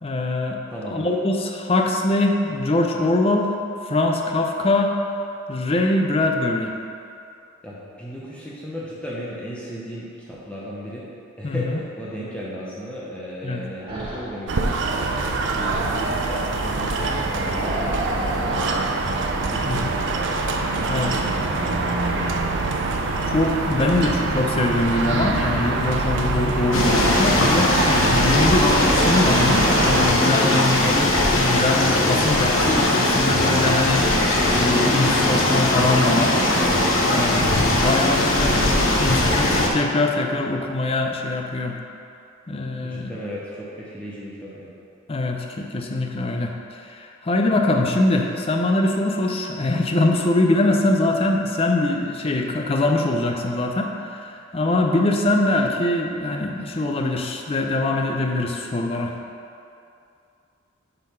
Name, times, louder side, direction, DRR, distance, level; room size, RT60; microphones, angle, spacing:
voice 1, 0.0-0.6 0.9-3.5 3.8-4.9 5.5-6.7 11.4-11.8 13.4-13.6 17.0-17.2 19.7-19.9 20.9-21.2 23.3-36.5 37.1-41.8 42.5-43.1 45.1-59.1, left 2 dB, 30° left, 2 dB, 0.5 m, -23 dB
voice 2, 0.7-1.1 7.6-11.0 11.4-15.1 15.4-18.9 19.3-20.4 21.2-21.6 22.0-22.8 42.8-44.7, equal, 5° left, -7 dB, 0.8 m, -35 dB
sound 1, 13.8-14.4 15.5-16.3 17.5-18.8, equal, 20° right, 1.3 m, -31 dB
sound 2, 14.5-30.1, right 3 dB, 60° right, 0.5 m, -24 dB
sound 3, 26.7-39.7, left 1 dB, 75° left, 0.9 m, -20 dB
7.4 x 3.9 x 5.6 m, 2.6 s
head